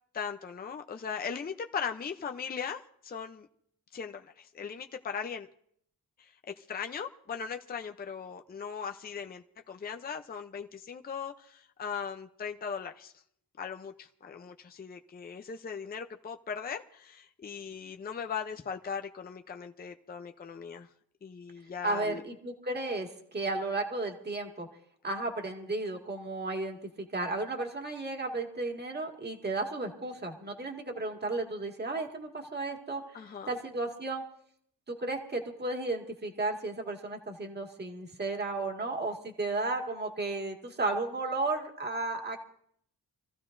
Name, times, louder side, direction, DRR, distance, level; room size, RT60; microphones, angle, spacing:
voice 1, 0.1-3.5 3.9-5.5 6.2-13.1 13.6-20.9 21.2-22.2 33.1-33.5, left 6 dB, 25° left, 5 dB, 0.6 m, -39 dB
voice 2, 21.8-24.7 25.0-26.8 27.1-34.2 34.9-42.4, right 2 dB, 30° right, 2 dB, 2.0 m, -34 dB
26.5 x 15.0 x 2.6 m, 0.67 s
wide cardioid pair, 125°, 36 cm